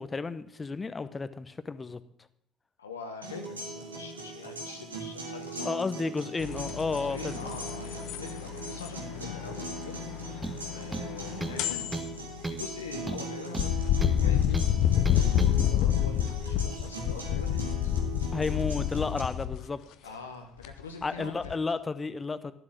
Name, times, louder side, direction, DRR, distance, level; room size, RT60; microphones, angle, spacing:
voice 1, 0.0-2.0 5.6-7.6 18.3-19.8 21.0-22.5, left 4 dB, 25° left, 14 dB, 0.8 m, -32 dB
voice 2, 2.8-5.7 6.9-10.1 10.7-17.9 20.0-21.6, left 5 dB, 85° left, 4 dB, 1.0 m, -44 dB
sound 1, 3.2-19.2, right 2 dB, 85° right, 1.9 m, -40 dB
sound 2, 6.4-13.2 13.6-19.6 20.6-21.0 21.4-21.5, left 11 dB, 60° left, 0.7 m, -29 dB
sound 3, 10.4-10.6 10.9-11.6 11.9-12.2 12.4-12.7 13.1-14.2 14.5-14.7 15.1-15.5, right 2 dB, 15° right, 1.0 m, -35 dB
12.0 x 7.5 x 6.0 m, 0.71 s
figure-of-eight pair, 55°, 0 cm